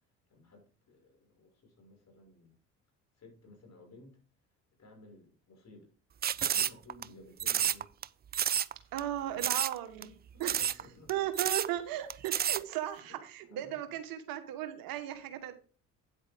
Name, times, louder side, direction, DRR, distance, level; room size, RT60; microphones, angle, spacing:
voice 1, 0.3-2.6 3.1-4.2 4.8-5.9 6.3-7.9 10.3-11.2 13.1-13.8 15.3-15.4, left 2 dB, 50° left, 1 dB, 5.8 m, -56 dB
sound 1, 6.2-7.0 7.4-8.0 8.3-8.7 9.0-9.1 9.4-9.8 10.0-10.1 10.4-10.8 11.1-11.2 11.4-11.7 12.1-12.6, right 9 dB, 30° right, 0.4 m, -30 dB
voice 2, 8.9-10.1 10.4-10.7 11.1-15.5, right 12 dB, 70° right, 8 dB, 1.5 m, -36 dB
9.5 x 8.1 x 3.6 m, 0.36 s
hypercardioid pair, 65°, 36 cm